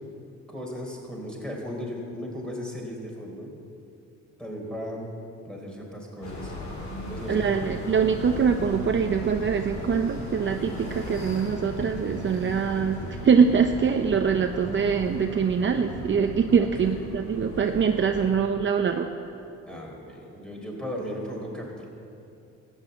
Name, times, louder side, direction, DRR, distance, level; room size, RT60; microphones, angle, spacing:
voice 1, 0.5-3.5 4.4-5.1 5.4-6.5 7.1-7.7 16.6-17.0 18.2-18.3 19.7-21.9, equal, 5° left, -1 dB, 3.9 m, -36 dB
sound 1, 6.2-18.3, left 1 dB, 65° left, 3.6 m, -37 dB
voice 2, 7.3-19.1, right 6 dB, 40° right, 5 dB, 0.7 m, -23 dB
13.5 x 9.1 x 8.2 m, 2.6 s
cardioid pair, 90°, 30 cm